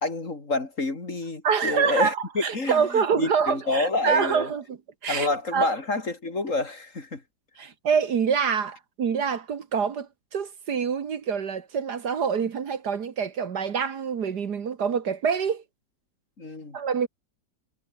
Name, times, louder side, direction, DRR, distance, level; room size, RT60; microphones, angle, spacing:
voice 1, 0.0-4.5 5.1-7.2 16.4-16.8, left 3 dB, 40° left, 3.7 m, -28 dB
voice 2, 1.4-4.8 5.0-5.3 5.5-5.7 7.6-15.6 16.7-17.1, right 6 dB, 60° right, 2.0 m, -26 dB
omnidirectional pair, 2.0 m